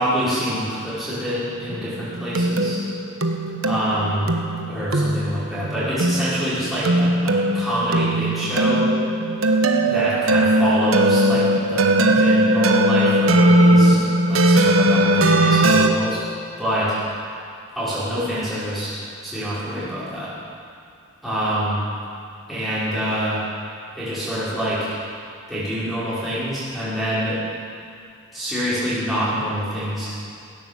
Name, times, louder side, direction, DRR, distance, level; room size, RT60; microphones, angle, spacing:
voice 1, 0.0-2.8 3.6-4.3 4.7-8.8 9.9-14.0 14.3-16.2 16.6-17.0 17.7-18.9 19.2-20.3 21.2-21.8 22.5-23.4 24.0-24.9 25.5-27.4 28.3-30.1, equal, ahead, -13 dB, 5.0 m, -26 dB
sound 1, 1.7-15.9, right 1 dB, 90° right, 1.2 m, -19 dB
16.0 x 12.0 x 7.3 m, 2.4 s
head